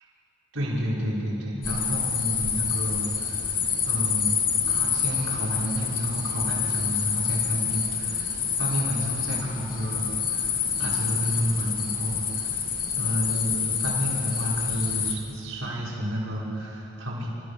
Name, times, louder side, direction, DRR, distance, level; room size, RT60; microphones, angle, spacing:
voice 1, 0.5-3.5 3.9-4.3 4.7-12.6 12.9-17.3, equal, 80° right, -5 dB, 5.3 m, -30 dB
sound 1, 1.6-15.1, left 7 dB, 45° left, 2.0 m, -27 dB
28.0 x 15.0 x 6.9 m, 3.0 s
head